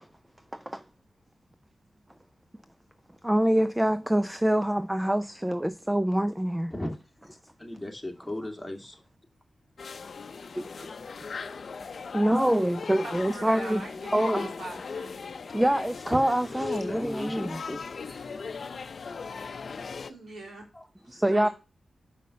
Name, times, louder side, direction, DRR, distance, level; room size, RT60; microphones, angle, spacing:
voice 1, 3.2-6.7 12.1-13.8 14.1-14.5 15.5-17.6 21.2-21.5, right 1 dB, 10° right, 0.4 m, -25 dB
voice 2, 7.6-9.0 10.5-11.0 16.1-18.2 20.7-20.9, left 1 dB, 5° left, 2.2 m, -37 dB
sound 1, 9.8-20.1, left 5 dB, 65° left, 0.6 m, -38 dB
voice 3, 13.0-15.1 20.1-20.7 21.0-21.5, right 2 dB, 70° right, 3.2 m, -42 dB
5.6 x 5.4 x 6.3 m
cardioid pair, 60°, 0 cm